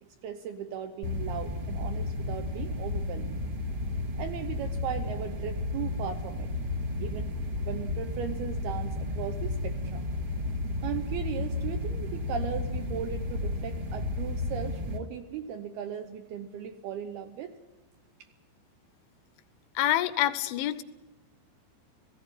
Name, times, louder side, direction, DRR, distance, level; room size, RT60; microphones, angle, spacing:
voice 1, 0.2-3.4 4.2-6.5 7.0-7.3 7.7-10.1 10.8-17.6, right 8 dB, 75° right, 7 dB, 2.4 m, -37 dB
sound 1, 1.0-15.0, left 2 dB, 50° right, 1.7 m, -33 dB
voice 2, 19.8-20.8, left 13 dB, 80° left, 13 dB, 3.2 m, -26 dB
18.5 x 16.0 x 10.0 m, 1.1 s
omnidirectional pair, 5.4 m